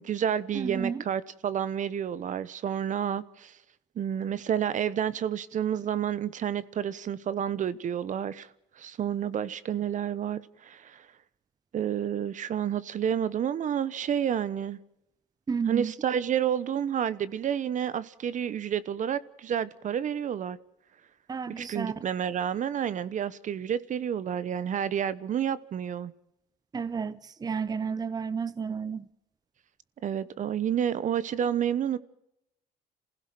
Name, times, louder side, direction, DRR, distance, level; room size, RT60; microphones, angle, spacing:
voice 1, 0.0-3.5 4.0-8.5 8.8-11.1 11.7-14.8 15.6-20.6 21.6-26.1 30.0-32.0, right 9 dB, 50° right, 1.0 m, -30 dB
voice 2, 0.5-1.0 15.5-15.9 21.3-22.0 26.7-29.1, right 6 dB, 25° right, 0.8 m, -32 dB
27.5 x 16.0 x 7.7 m
cardioid pair, 110°, 17 cm